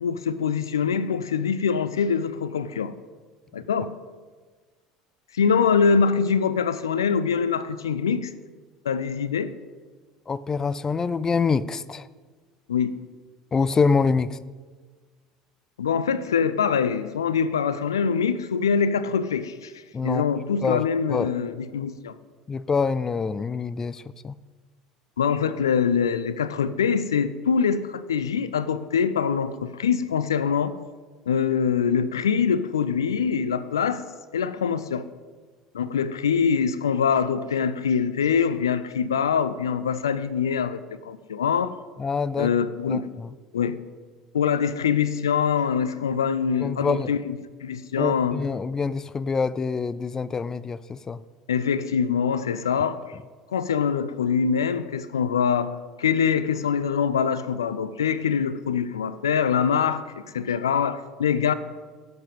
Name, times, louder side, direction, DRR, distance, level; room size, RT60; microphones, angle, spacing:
voice 1, 0.0-2.9 3.5-3.9 5.3-8.3 8.8-9.5 12.7-13.0 15.8-19.7 20.0-22.1 25.2-30.8 31.3-34.0 34.3-35.1 35.7-40.8 41.0-41.7 42.4-43.1 43.5-43.8 44.3-48.4 51.5-53.0 53.5-61.5, left 6 dB, 80° left, 0.5 m, -24 dB
voice 2, 10.3-12.1 13.5-14.4 19.9-20.2 20.6-20.8 21.1-21.3 22.5-24.3 42.0-42.5 42.9-43.0 46.6-47.1 48.0-51.2, left 5 dB, 25° left, 0.5 m, -25 dB
16.5 x 7.9 x 5.3 m
figure-of-eight pair, 65°, 2 cm